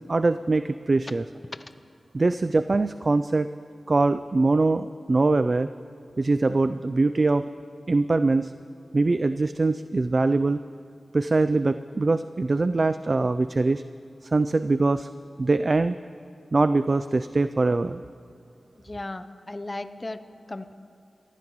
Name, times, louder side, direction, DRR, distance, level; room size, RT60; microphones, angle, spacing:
voice 1, 0.1-1.2 2.1-3.5 3.9-5.7 6.2-7.4 7.9-8.5 8.9-10.6 11.1-13.8 14.2-15.1 15.4-16.0 16.5-18.0, right 3 dB, 40° right, 12 dB, 0.3 m, -22 dB
voice 2, 18.8-20.2 20.5-20.7, left 2 dB, 25° left, 10 dB, 0.7 m, -35 dB
29.5 x 14.5 x 3.1 m, 2.3 s
wide cardioid pair, 85°, 0 cm